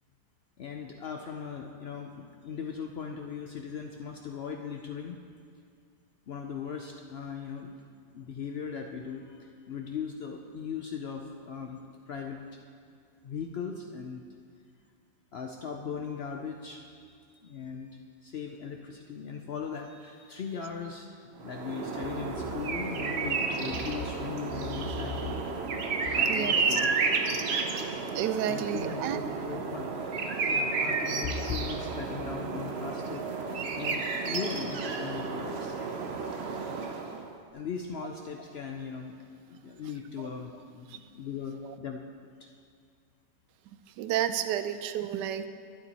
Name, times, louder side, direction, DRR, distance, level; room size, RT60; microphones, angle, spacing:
voice 1, 0.6-5.2 6.3-7.8 8.1-12.6 13.2-14.2 15.3-17.0 17.4-25.4 26.1-27.0 28.5-29.9 30.5-35.7 37.5-39.2 39.5-42.0 42.4-42.5, left 6 dB, 90° left, 3 dB, 0.5 m, -38 dB
sound 1, 21.4-37.3, right 4 dB, 55° right, 0.7 m, -31 dB
voice 2, 26.3-26.8 27.7-27.8 28.1-29.4 44.0-45.5, right 10 dB, 85° right, 10 dB, 1.2 m, -31 dB
12.0 x 9.9 x 4.1 m, 2.2 s
omnidirectional pair, 1.8 m